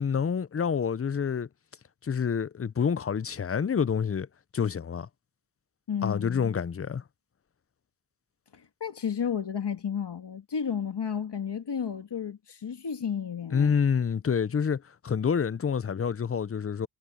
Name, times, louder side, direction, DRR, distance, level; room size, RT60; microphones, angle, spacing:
voice 1, 0.0-1.5 2.0-4.3 4.5-5.1 6.0-7.0 13.5-16.9, left 6 dB, 35° left, 0.5 m, -27 dB
voice 2, 5.9-6.5 8.5-13.8, left 7 dB, 75° left, 1.8 m, -32 dB
wide cardioid pair, 80°, 42 cm